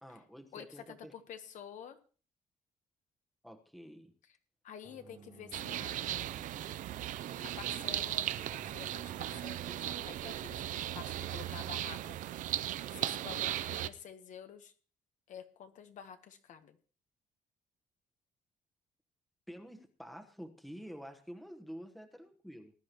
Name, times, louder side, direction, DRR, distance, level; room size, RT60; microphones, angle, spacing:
voice 1, 0.0-1.1 3.4-4.1 19.5-22.7, equal, ahead, 4 dB, 1.1 m, -49 dB
voice 2, 0.5-2.0 4.6-6.3 7.4-8.2 8.5-12.0 12.9-14.7 15.3-16.8, left 8 dB, 65° left, 8 dB, 1.2 m, -49 dB
sound 1, 4.8-11.9, right 5 dB, 25° right, 0.7 m, -56 dB
sound 2, 5.5-13.9, right 12 dB, 75° right, 0.5 m, -37 dB
19.5 x 10.5 x 3.0 m, 0.38 s
cardioid pair, 150°, 14 cm